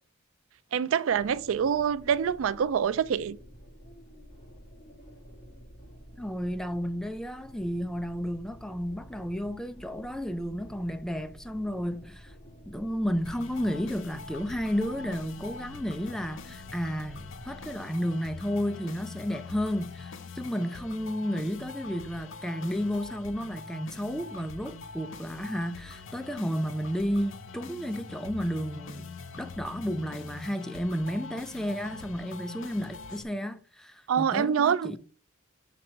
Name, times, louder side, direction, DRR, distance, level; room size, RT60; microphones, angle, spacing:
voice 1, 0.7-3.4 34.1-35.0, right 7 dB, 70° right, 0.3 m, -26 dB
sound 1, 1.1-17.8, equal, 40° left, 2.5 m, -50 dB
voice 2, 6.2-12.3 12.7-29.1 29.4-35.0, equal, 5° left, 0.4 m, -32 dB
sound 2, 13.2-33.2, left 4 dB, 65° left, 0.6 m, -44 dB
5.9 x 4.1 x 4.4 m
head